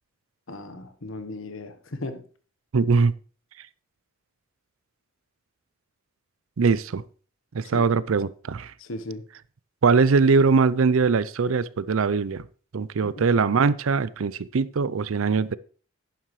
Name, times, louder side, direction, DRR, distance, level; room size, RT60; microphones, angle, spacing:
voice 1, 0.5-2.2 7.6-7.9 8.8-9.2 13.0-13.3, left 2 dB, 75° left, 1.2 m, -36 dB
voice 2, 2.7-3.1 6.6-7.0 7.5-8.7 9.8-12.4 12.7-15.6, right 4 dB, 75° right, 0.5 m, -21 dB
11.5 x 9.3 x 3.2 m
head